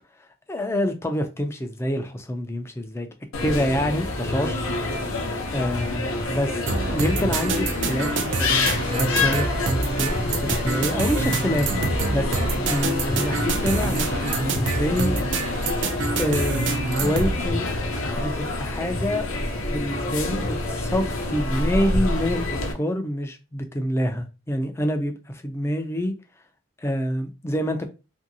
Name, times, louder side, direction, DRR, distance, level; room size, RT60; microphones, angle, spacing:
voice 1, 0.5-3.1 3.4-4.7 5.5-6.6 6.9-8.6 8.9-12.4 12.7-15.2 16.2-17.7 18.2-19.3 19.7-26.1 26.8-27.9, equal, 15° left, 0.3 m, -27 dB
sound 1, 3.3-22.7, left 2 dB, 90° left, 0.6 m, -27 dB
sound 2, 6.7-17.3, right 3 dB, 60° right, 0.4 m, -27 dB
Drill, 8.6-14.6, left 5 dB, 45° left, 0.7 m, -46 dB
2.8 x 2.6 x 2.6 m
head